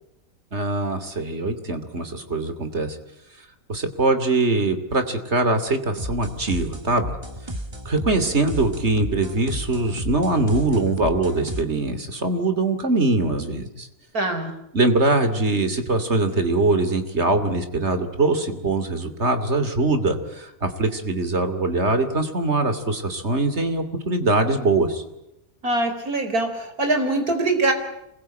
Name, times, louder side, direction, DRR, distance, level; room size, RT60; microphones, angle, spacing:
voice 1, 0.5-3.0 3.7-7.1 7.8-13.9 14.7-25.0, right 2 dB, 50° right, 9 dB, 3.1 m, -22 dB
sound 1, 6.0-11.6, right 1 dB, 20° right, 1.8 m, -33 dB
voice 2, 14.1-14.5 25.6-27.7, right 2 dB, 90° right, 6 dB, 4.8 m, -23 dB
27.0 x 21.5 x 9.1 m, 0.85 s
omnidirectional pair, 1.5 m